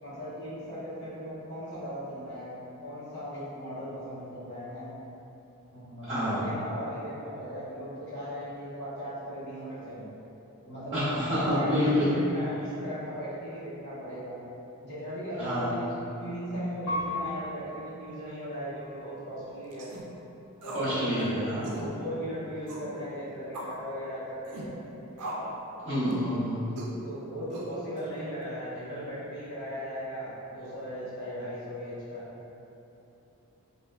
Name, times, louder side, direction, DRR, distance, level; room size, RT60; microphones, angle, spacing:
voice 1, 0.0-4.9 5.7-10.1 10.6-14.4 14.8-15.9 16.2-19.9 20.6-24.8 27.0-32.3, equal, 50° left, -11 dB, 1.1 m, -38 dB
voice 2, 6.0-6.4 10.9-12.1 15.4-15.7 20.7-21.7 25.8-26.6, equal, 25° right, -13 dB, 0.9 m, -28 dB
Piano, 16.9-19.6 20.2-20.9, left 1 dB, 85° left, 0.8 m, -38 dB
sound 1, 19.7-20.0 20.6-20.9 21.2-21.3 21.6-21.9 22.7-22.9 23.5-23.8 24.5-24.7 25.2-25.6 26.0-26.3 26.8-27.0 27.5-28.0, right 1 dB, 85° right, 0.4 m, -38 dB
3.5 x 2.4 x 2.2 m, 2.8 s
head